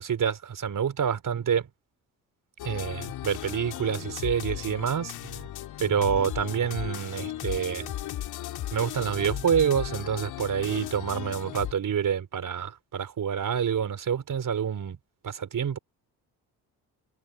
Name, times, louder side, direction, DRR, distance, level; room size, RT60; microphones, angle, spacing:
voice 1, 0.0-1.7 2.6-5.5 5.8-8.0 8.7-15.0 15.2-15.8, right 8 dB, 55° right, 4.5 m, -27 dB
sound 1, 2.6-11.7, left 13 dB, 85° left, 3.5 m, -36 dB
cardioid pair, 75°, 37 cm